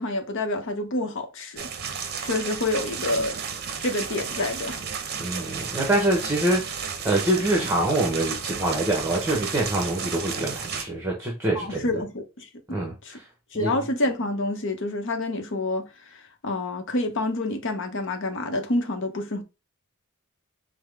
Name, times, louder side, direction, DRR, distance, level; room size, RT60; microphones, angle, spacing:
voice 1, 0.0-1.7 2.2-3.4 3.8-4.8 11.5-12.8 13.0-13.2 13.5-19.4, left 2 dB, 60° left, 0.8 m, -28 dB
sound 1, 1.6-10.8, right 6 dB, 45° right, 0.7 m, -33 dB
voice 2, 5.2-12.0 12.7-12.9 13.6-13.8, right 1 dB, 10° right, 0.9 m, -25 dB
5.6 x 2.1 x 3.2 m
head